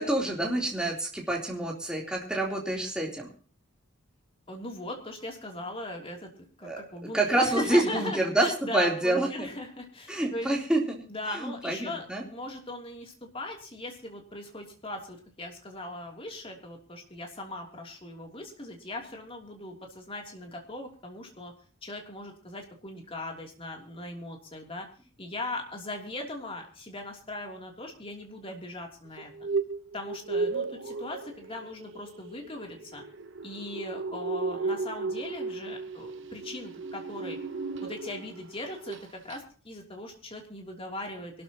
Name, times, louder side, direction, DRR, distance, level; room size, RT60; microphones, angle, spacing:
voice 1, 0.0-3.3 6.6-6.8 7.1-8.5 8.7-9.5 10.1-11.0 11.4-12.2, right 1 dB, 5° right, -2 dB, 3.5 m, -27 dB
voice 2, 4.5-10.6 11.1-21.5 21.8-24.9 25.2-29.5 29.9-33.0 33.4-37.4 37.8-41.4, left 1 dB, 25° left, 1 dB, 3.1 m, -39 dB
sound 1, 29.2-38.4 38.7-39.0 39.3-39.4, right 4 dB, 60° right, 1.1 m, -35 dB
24.5 x 13.0 x 3.0 m, 0.40 s
head